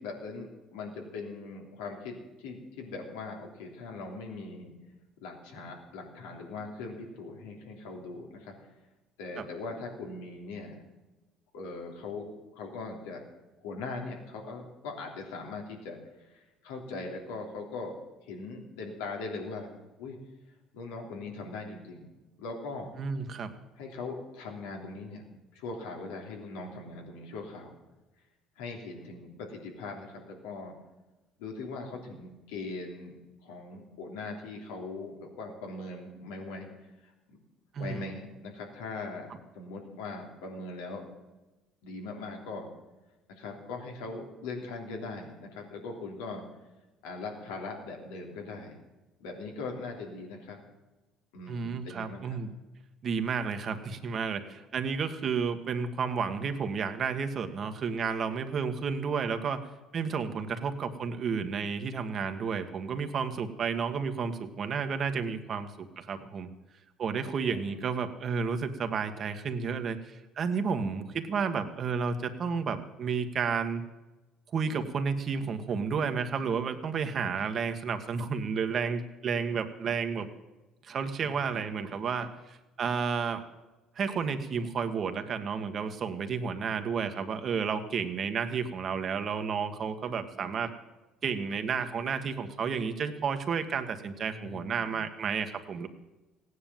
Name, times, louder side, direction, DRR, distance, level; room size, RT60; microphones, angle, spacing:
voice 1, 0.0-4.7 5.2-8.7 9.2-10.8 11.5-12.3 12.5-13.2 13.6-17.9 18.2-19.7 20.0-20.2 20.7-22.1 22.4-22.9 23.8-25.2 25.5-27.8 28.6-30.7 31.4-33.2 33.4-36.7 37.0-37.4 37.8-39.3 39.5-41.0 41.8-42.7 43.3-46.4 47.0-48.7 49.2-50.6 51.3-52.4 67.2-67.8 81.2-82.0 94.3-95.0, left 3 dB, 90° left, 1 dB, 3.1 m, -40 dB
voice 2, 23.0-23.5 37.7-38.0 51.5-52.5 53.0-59.7 59.9-66.5 67.0-73.8 74.5-80.3 80.8-83.4 83.9-90.7 91.2-95.9, right 6 dB, 45° right, 7 dB, 1.6 m, -31 dB
16.5 x 9.8 x 7.4 m, 1.1 s
supercardioid pair, 85°, 0 cm